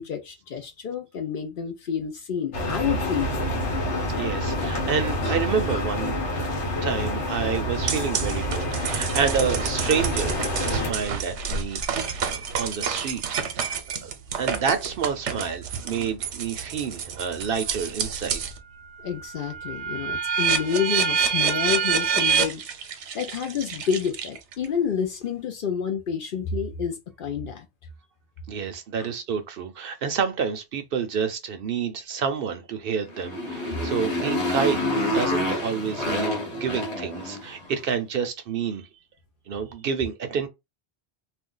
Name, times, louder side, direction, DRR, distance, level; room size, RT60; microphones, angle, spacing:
voice 1, 0.0-3.5 19.0-27.7, left 7 dB, 60° left, 0.6 m, -29 dB
sound 1, 2.5-10.9, equal, 90° left, 1.3 m, -27 dB
voice 2, 4.2-6.1 6.8-14.1 14.4-18.4 28.5-38.9 39.5-40.5, right 6 dB, 65° right, 0.7 m, -29 dB
sound 2, 7.9-18.6 19.0-24.7, right 7 dB, 85° right, 0.9 m, -28 dB
Motorcycle, 33.1-37.7, left 1 dB, 40° left, 1.1 m, -27 dB
2.5 x 2.2 x 3.7 m
omnidirectional pair, 1.1 m